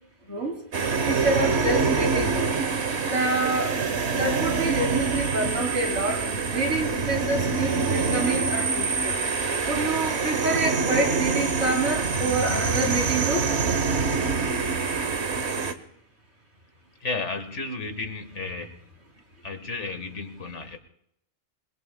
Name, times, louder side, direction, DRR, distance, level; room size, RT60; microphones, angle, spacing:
sound 1, 0.7-15.7, right 4 dB, 70° right, 1.4 m, -25 dB
voice 1, 1.0-2.5 3.1-3.8 4.2-9.1 9.7-13.5, right 2 dB, 85° right, 1 dB, 3.4 m, -27 dB
voice 2, 17.0-18.8 19.4-20.8, left 3 dB, 85° left, 8 dB, 1.9 m, -33 dB
27.0 x 21.0 x 2.3 m, 0.75 s
omnidirectional pair, 1.2 m